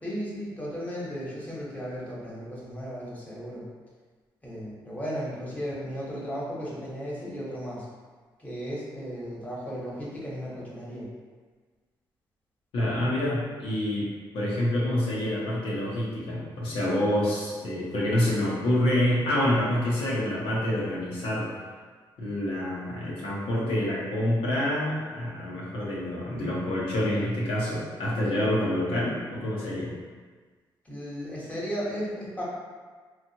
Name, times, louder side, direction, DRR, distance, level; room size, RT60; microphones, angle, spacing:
voice 1, 0.0-3.6 4.4-7.9 8.4-11.1 30.8-32.4, equal, 15° left, -6 dB, 1.1 m, -35 dB
voice 2, 12.7-14.1 14.3-21.5 22.2-29.9, left 1 dB, 85° left, -6 dB, 0.9 m, -27 dB
3.0 x 2.4 x 2.8 m, 1.5 s
cardioid pair, 70°, 9 cm